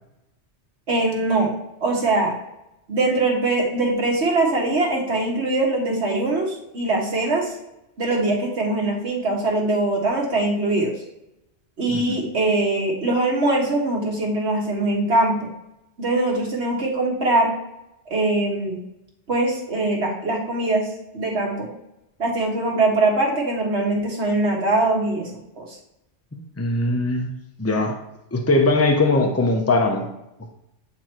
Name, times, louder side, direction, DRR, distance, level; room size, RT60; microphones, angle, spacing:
voice 1, 0.9-1.5 1.8-2.3 2.9-7.5 8.0-10.9 11.8-15.3 16.0-17.5 18.1-18.8 19.3-21.7 22.2-25.3 25.6-25.8, right 2 dB, 75° right, -1 dB, 1.8 m, -22 dB
voice 2, 26.3-27.3 27.6-28.0 28.3-30.1, left 2 dB, 15° left, 2 dB, 0.8 m, -20 dB
8.6 x 3.0 x 4.5 m, 0.89 s
omnidirectional pair, 1.2 m